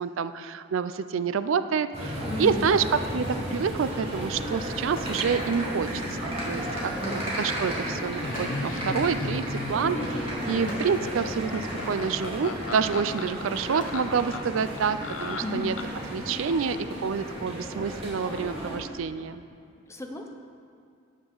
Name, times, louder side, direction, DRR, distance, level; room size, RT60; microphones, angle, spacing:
voice 1, 0.0-15.7 16.1-19.4, right 6 dB, 75° right, 12 dB, 0.4 m, -28 dB
sound 1, 1.9-18.8, equal, 30° right, 2.5 m, -33 dB
voice 2, 2.2-2.8 7.0-7.3 10.4-10.8 15.4-15.7 19.9-20.3, left 1 dB, 15° left, 3 dB, 0.8 m, -34 dB
sound 2, 5.0-6.0 7.3-7.4 8.3-9.3 10.7-12.0 13.8-14.8 15.5-15.8, equal, 40° left, 2.5 m, -46 dB
Laughter, 8.2-16.1, left 3 dB, 85° left, 0.8 m, -36 dB
13.5 x 9.5 x 4.0 m, 2.3 s
head